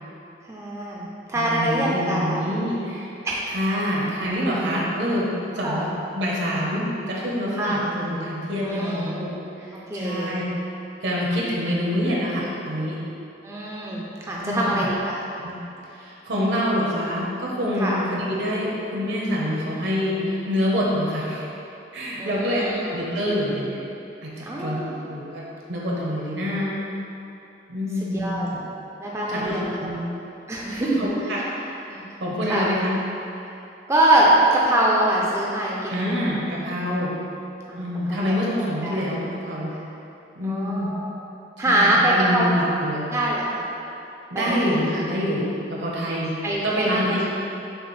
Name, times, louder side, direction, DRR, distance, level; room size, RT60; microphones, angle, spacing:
voice 1, 0.5-2.4 3.2-3.5 4.5-4.6 5.6-5.9 7.6-7.8 8.6-9.4 9.7-10.4 13.4-15.2 17.8-18.0 22.1-22.8 24.4-25.0 28.1-28.5 29.0-29.9 30.5-31.0 31.9-32.0 32.5-32.7 33.5-33.6 33.9-36.4 37.7-39.1 40.4-41.2 41.6-42.5 43.1-43.6 44.3-44.8 46.4-47.1, right 1 dB, 15° right, -4 dB, 0.4 m, -24 dB
voice 2, 1.3-3.1 3.5-5.3 5.5-5.9 6.1-9.3 9.6-10.4 11.0-13.0 14.4-14.7 15.4-15.5 15.9-21.4 21.9-23.8 24.2-24.8 25.1-26.7 27.7-28.4 29.3-30.0 30.7-31.4 32.2-33.0 35.9-37.1 37.8-39.7 40.4-40.9 41.6-43.0 44.3-45.4 45.7-46.3 46.6-47.3, equal, 75° right, -5 dB, 0.9 m, -26 dB
6.7 x 2.5 x 3.2 m, 2.9 s
head